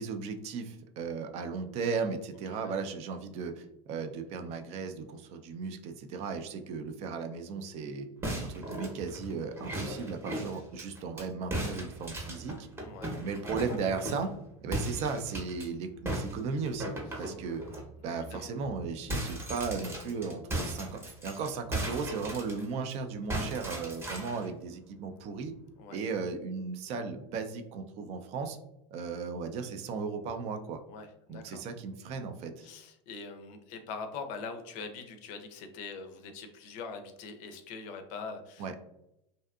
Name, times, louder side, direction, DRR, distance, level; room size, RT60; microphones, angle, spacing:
voice 1, 0.0-8.1 8.4-12.7 13.2-14.3 14.6-16.9 17.2-17.6 18.0-25.5 25.9-28.6 28.9-30.8 31.3-32.7 38.6-38.7, right 5 dB, 45° right, 6 dB, 0.4 m, -36 dB
sound 1, 8.2-11.2 11.5-14.3 14.7-15.7 16.1-17.8 18.2-18.4 18.7-22.9 23.3-24.5, right 1 dB, 15° right, 0.8 m, -37 dB
voice 2, 12.8-13.2 17.1-17.3 18.1-18.5 25.8-26.0 30.9-31.6 32.6-38.8, left 4 dB, 55° left, 7 dB, 0.5 m, -43 dB
2.6 x 2.4 x 2.3 m, 0.82 s
supercardioid pair, 120°, 15 cm